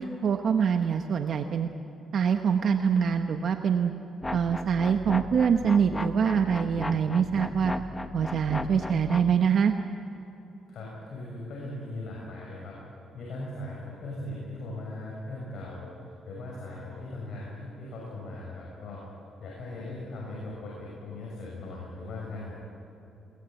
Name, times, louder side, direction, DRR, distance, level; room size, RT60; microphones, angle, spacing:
voice 1, 0.0-1.7 2.1-3.9 4.3-7.7 8.1-9.7, right 7 dB, 60° right, 6 dB, 1.0 m, -24 dB
sound 1, 4.2-9.3, left 2 dB, 15° left, 1.1 m, -36 dB
voice 2, 10.7-12.8 13.1-15.9 16.2-19.0 19.4-22.5, left 2 dB, 65° left, -3 dB, 6.5 m, -39 dB
21.5 x 19.5 x 9.2 m, 2.9 s
cardioid pair, 90°, 0 cm